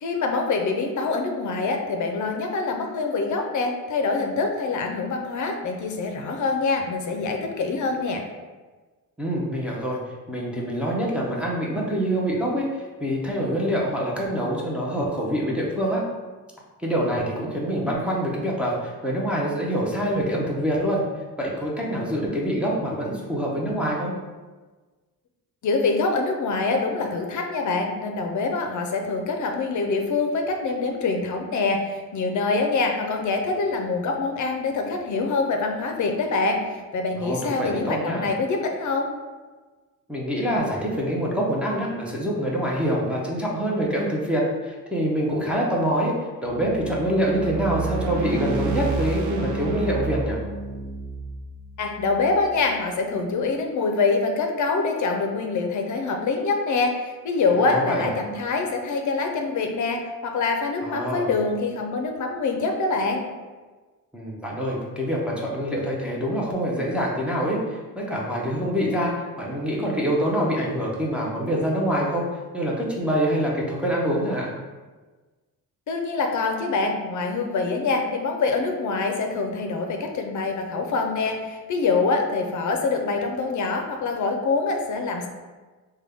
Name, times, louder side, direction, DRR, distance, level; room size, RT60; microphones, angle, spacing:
voice 1, 0.0-8.2 25.6-39.1 51.8-63.2 75.9-85.3, left 3 dB, 60° left, 3 dB, 0.5 m, -25 dB
voice 2, 9.2-10.0 10.3-12.7 13.0-16.0 16.8-21.0 21.4-24.1 37.1-38.3 40.1-46.1 46.4-50.4 57.6-58.1 60.8-61.3 64.1-72.3 72.5-74.5, equal, 5° right, -5 dB, 0.5 m, -25 dB
sound 1, 46.5-52.7, right 4 dB, 55° right, 0.6 m, -30 dB
5.1 x 2.2 x 3.4 m, 1.3 s
wide cardioid pair, 165°, 34 cm